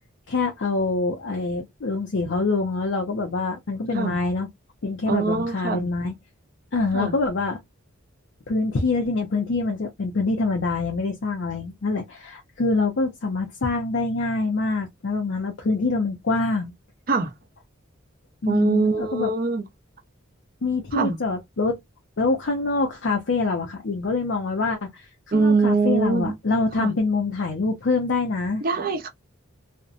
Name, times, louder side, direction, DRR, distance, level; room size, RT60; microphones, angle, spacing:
voice 1, 0.3-4.5 4.8-6.1 6.7-7.6 8.5-16.7 18.4-19.3 20.6-21.8 22.2-25.1 25.3-28.6, left 3 dB, 60° left, 0.5 m, -25 dB
voice 2, 5.1-5.9 6.9-7.1 17.1-17.3 18.5-19.6 20.9-21.2 25.3-26.4 26.8-26.9 28.6-29.1, right 4 dB, 45° right, 0.6 m, -23 dB
2.5 x 2.1 x 2.4 m
head